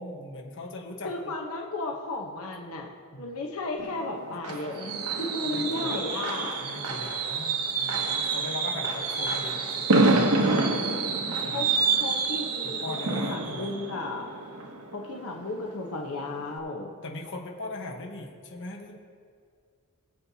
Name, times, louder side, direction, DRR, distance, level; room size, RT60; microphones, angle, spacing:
voice 1, 0.0-1.4 3.1-3.3 4.5-4.7 5.4-6.0 6.5-11.0 11.4-11.7 12.6-13.7 17.0-18.9, left 2 dB, 60° left, 1 dB, 1.2 m, -40 dB
voice 2, 1.0-2.9 3.2-6.6 11.5-11.7 11.9-14.3 14.9-16.9, left 2 dB, 85° left, 0 dB, 1.0 m, -34 dB
Fireworks, 3.8-15.5 15.9-16.1 16.4-16.5, right 3 dB, 85° right, 1.0 m, -27 dB
20.5 x 7.7 x 2.8 m, 2.2 s
head